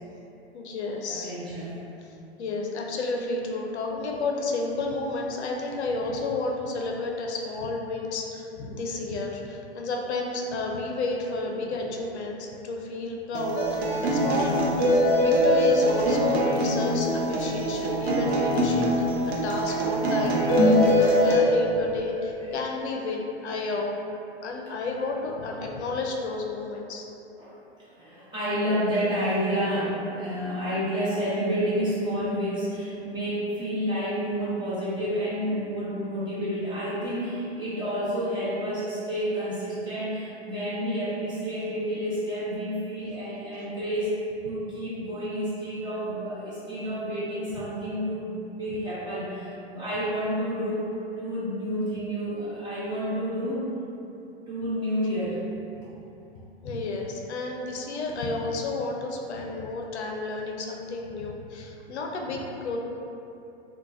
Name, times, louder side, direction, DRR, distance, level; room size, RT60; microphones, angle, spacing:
voice 1, 0.5-1.3 2.4-14.7 15.2-23.9 24.4-27.1 56.6-62.8, left 3 dB, 85° left, 0 dB, 0.5 m, -31 dB
voice 2, 1.1-1.8 11.6-12.0 17.4-17.6 22.4-22.6 27.4-27.5 27.9-50.9 51.2-53.6 54.5-55.4, equal, 15° right, -12 dB, 1.0 m, -30 dB
Acoustic guitar, 13.3-21.4, right 1 dB, 75° right, 0.6 m, -25 dB
sound 1, 13.5-13.7 13.9-14.0 14.3-14.4 14.8-15.8 20.5-21.5, left 2 dB, 30° left, 0.4 m, -21 dB
3.1 x 2.2 x 2.3 m, 2.9 s
hypercardioid pair, 120°, 32 cm